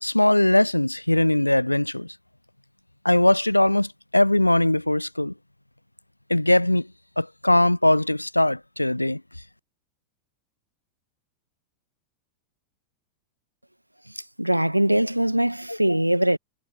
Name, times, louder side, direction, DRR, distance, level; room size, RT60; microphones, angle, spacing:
voice 1, 0.0-2.1 3.0-5.3 6.3-6.9 7.2-9.2 15.7-16.0, left 1 dB, 85° left, 0.4 m, -20 dB
voice 2, 14.4-16.4, right 1 dB, 90° right, 1.6 m, -21 dB
figure-of-eight pair, 90°, 0 cm